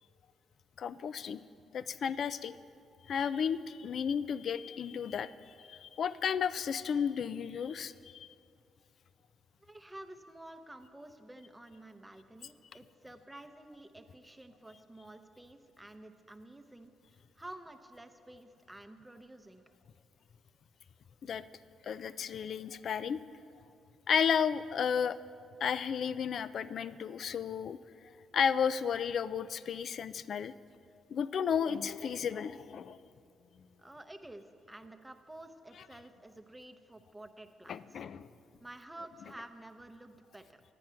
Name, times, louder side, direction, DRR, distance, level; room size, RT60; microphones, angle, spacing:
voice 1, 0.8-1.4 1.7-2.6 3.1-8.4 21.2-21.4 21.8-23.2 24.1-25.2 25.6-27.8 28.3-30.5 31.1-33.0 37.7-38.3, left 7 dB, 60° left, 15 dB, 0.3 m, -33 dB
voice 2, 9.6-19.6 33.8-38.0 38.6-40.6, right 1 dB, 10° right, 8 dB, 0.7 m, -51 dB
10.5 x 8.9 x 5.6 m, 2.4 s
cardioid pair, 90°, 0 cm